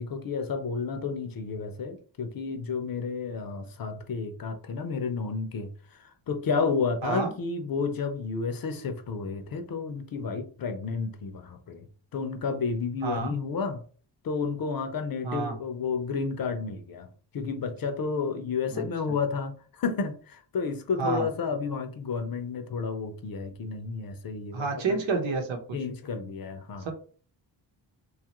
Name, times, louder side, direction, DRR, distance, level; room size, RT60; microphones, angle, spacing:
voice 1, 0.0-11.9 12.1-13.8 14.2-17.1 17.3-25.0 25.7-26.9, left 5 dB, 50° left, 0.6 m, -31 dB
voice 2, 13.0-13.3 15.2-15.6 18.7-18.9 21.0-21.3 24.5-25.8 26.8-26.9, right 4 dB, 85° right, 0.9 m, -29 dB
2.9 x 2.4 x 2.9 m
cardioid pair, 70°, 45 cm